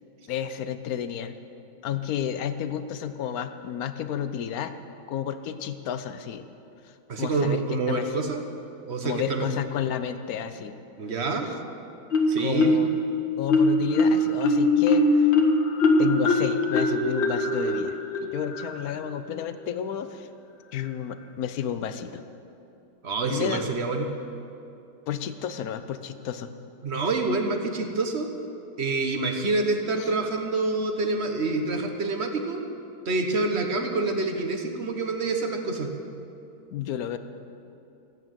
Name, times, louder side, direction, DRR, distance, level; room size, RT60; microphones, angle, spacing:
voice 1, 0.3-1.3 1.8-4.7 5.1-6.5 7.2-8.1 9.0-10.8 12.4-12.9 13.4-15.3 16.0-20.3 20.7-22.2 23.3-23.8 25.1-26.5 30.0-30.1 36.7-37.2, left 9 dB, 60° left, 10 dB, 1.1 m, -31 dB
voice 2, 7.1-8.4 8.9-9.5 11.0-11.5 12.3-12.7 23.0-24.1 26.8-28.3 28.8-32.6 33.0-35.9, right 3 dB, 40° right, 4 dB, 1.3 m, -27 dB
Marimba xylophone, 12.1-13.0 13.5-19.0, left 2 dB, 80° left, 2.1 m, -22 dB
15.5 x 8.6 x 9.2 m, 2.8 s
omnidirectional pair, 2.0 m